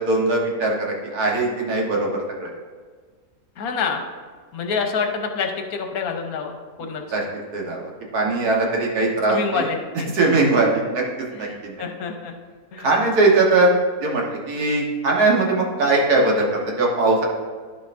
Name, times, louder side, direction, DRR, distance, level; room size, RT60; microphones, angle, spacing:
voice 1, 0.0-2.5 7.1-7.2 7.5-9.7 10.1-11.0 11.4-11.8 12.8-13.7 14.0-17.2, right 2 dB, 90° right, -1 dB, 1.8 m, -20 dB
voice 2, 3.6-4.0 4.5-7.0 9.3-10.1 11.3-12.3 12.7-12.9, left 5 dB, 75° left, 4 dB, 1.3 m, -27 dB
11.0 x 5.9 x 2.6 m, 1.5 s
omnidirectional pair, 1.6 m